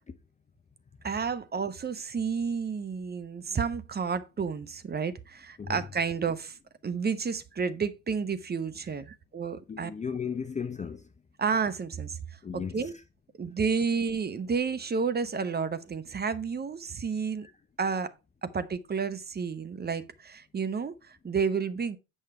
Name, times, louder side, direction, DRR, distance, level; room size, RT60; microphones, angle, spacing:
voice 1, 1.0-6.6 6.8-9.9 11.4-12.2 12.5-12.9 13.4-17.5 17.8-18.1 18.4-22.0, right 5 dB, 20° right, 0.9 m, -31 dB
voice 2, 9.7-11.1 12.4-12.9 17.4-17.5, left 6 dB, 15° left, 0.6 m, -35 dB
8.5 x 6.3 x 4.3 m
figure-of-eight pair, 60°, 49 cm